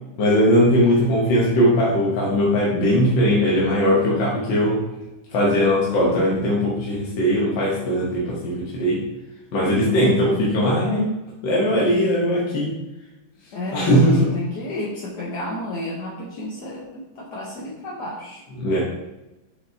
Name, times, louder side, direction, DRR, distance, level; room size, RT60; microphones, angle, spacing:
voice 1, 0.2-4.9 5.3-9.0 9.5-11.1 11.4-12.7 13.7-14.3 18.6-18.8, equal, 85° left, -5 dB, 1.8 m, -19 dB
voice 2, 9.9-10.4 13.5-18.4, left 1 dB, 65° left, -4 dB, 1.5 m, -31 dB
7.3 x 4.8 x 2.8 m, 0.99 s
omnidirectional pair, 2.0 m